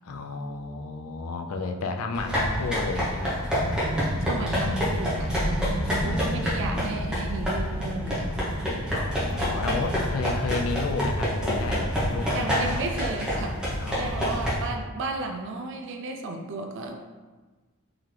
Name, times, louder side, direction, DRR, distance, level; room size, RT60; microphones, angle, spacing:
voice 1, 0.0-3.5 5.7-6.8 8.9-12.9 13.8-14.5, left 3 dB, 70° left, 5 dB, 0.4 m, -33 dB
sound 1, 2.1-14.5, equal, 5° right, 0.8 m, -28 dB
sound 2, 3.2-14.5, right 1 dB, 30° right, 1.4 m, -37 dB
voice 2, 4.2-8.4 12.3-17.1, right 2 dB, 55° right, 3 dB, 0.4 m, -34 dB
3.8 x 2.8 x 3.2 m, 1.3 s
head